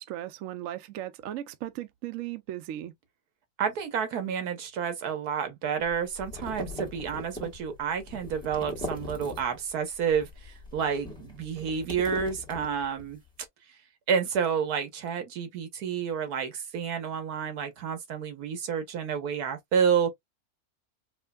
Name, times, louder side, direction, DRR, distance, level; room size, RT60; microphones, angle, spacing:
voice 1, 0.0-2.9, right 13 dB, 70° right, 0.9 m, -37 dB
voice 2, 3.6-13.2 14.1-20.1, right 7 dB, 90° right, 1.5 m, -29 dB
sound 1, 5.8-9.7 10.0-13.1, left 2 dB, 5° left, 1.4 m, -40 dB
4.9 x 2.4 x 2.3 m
omnidirectional pair, 1.6 m